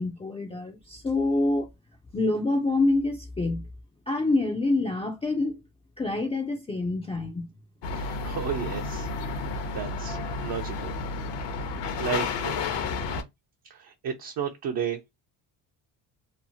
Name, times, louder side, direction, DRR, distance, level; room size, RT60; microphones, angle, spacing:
voice 1, 0.0-1.7 2.1-3.7 4.1-5.6 6.0-7.5, left 2 dB, 15° left, 0.4 m, -26 dB
sound 1, 7.8-13.2, left 4 dB, 60° left, 0.8 m, -31 dB
voice 2, 7.9-10.9 11.7-12.6 13.7-15.0, right 8 dB, 50° right, 0.7 m, -34 dB
2.9 x 2.0 x 2.7 m
cardioid pair, 90°, 47 cm